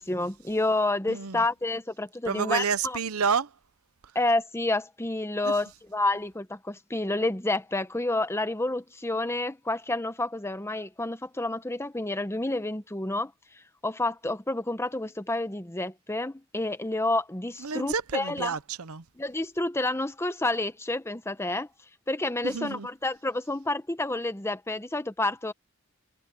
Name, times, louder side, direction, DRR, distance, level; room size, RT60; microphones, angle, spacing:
voice 1, 0.0-3.0 4.1-13.3 13.8-18.5 19.2-21.7 22.1-25.5, left 2 dB, 10° left, 0.9 m, -29 dB
voice 2, 1.1-1.4 2.3-3.5 5.4-5.5 17.6-19.0 22.4-22.9, right 6 dB, 85° right, 0.8 m, -29 dB
head